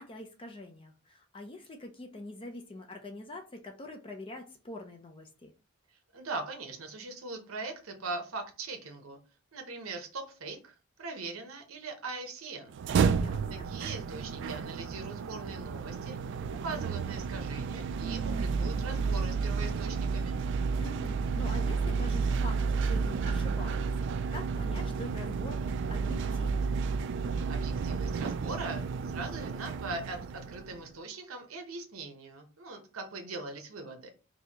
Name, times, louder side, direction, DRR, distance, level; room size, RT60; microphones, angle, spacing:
voice 1, 0.0-5.5 13.1-13.7 20.8-25.6 25.9-26.7, left 1 dB, 25° left, 4 dB, 0.5 m, -45 dB
voice 2, 6.1-9.2 9.5-12.7 13.5-16.2 16.6-20.4 27.5-34.1, right 3 dB, 85° right, 3 dB, 0.8 m, -41 dB
sound 1, 12.7-30.8, right 5 dB, 60° right, 0.3 m, -31 dB
4.1 x 2.7 x 2.8 m, 0.33 s
head